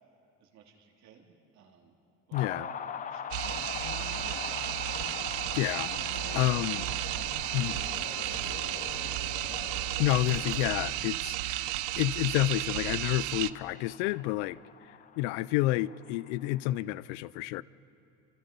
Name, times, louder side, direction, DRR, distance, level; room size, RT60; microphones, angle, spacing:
voice 1, 0.4-1.9 2.3-4.3 5.5-5.8 6.1-6.5 6.9-7.4 7.7-8.8, right 7 dB, 55° right, 2 dB, 3.1 m, -56 dB
voice 2, 2.3-2.7 5.6-6.8 7.5-7.8 10.0-14.6 15.2-17.6, left 17 dB, 80° left, 20 dB, 0.5 m, -29 dB
sound 1, 2.3-16.8, left 8 dB, 25° left, 0.6 m, -44 dB
sound 2, 3.3-13.5, right 18 dB, 85° right, 0.7 m, -33 dB
sound 3, 3.4-10.7, left 7 dB, 60° left, 2.0 m, -45 dB
29.0 x 26.5 x 5.3 m, 2.8 s
cardioid pair, 145°, 34 cm